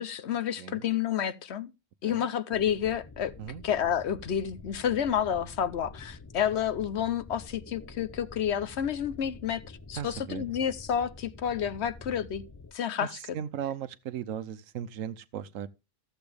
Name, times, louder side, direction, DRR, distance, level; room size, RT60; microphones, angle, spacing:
voice 1, 0.0-1.7 2.0-3.3 3.6-12.4 12.7-13.4, left 9 dB, 65° left, 1.0 m, -30 dB
sound 1, 2.5-12.7, left 3 dB, 20° left, 0.5 m, -48 dB
voice 2, 10.0-10.4 13.0-13.1 13.3-15.7, right 9 dB, 90° right, 1.1 m, -37 dB
14.0 x 7.9 x 3.4 m
omnidirectional pair, 1.3 m